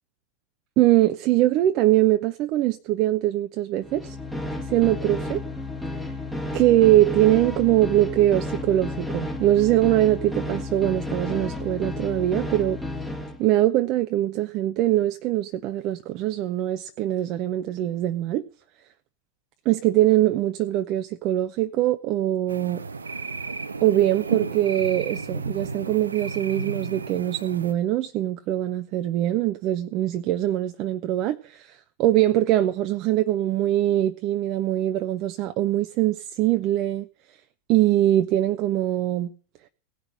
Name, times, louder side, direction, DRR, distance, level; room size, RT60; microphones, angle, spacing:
voice 1, 0.8-4.2 4.7-5.4 5.9-6.1 6.5-12.8 13.4-18.4 19.7-22.8 23.8-37.1 37.7-39.3, right 14 dB, 40° right, 0.7 m, -22 dB
sound 1, 3.8-13.4, left 2 dB, 5° left, 1.6 m, -32 dB
sound 2, 22.5-27.7, right 4 dB, 75° right, 0.7 m, -33 dB
17.5 x 5.9 x 9.6 m
figure-of-eight pair, 90°, 0 cm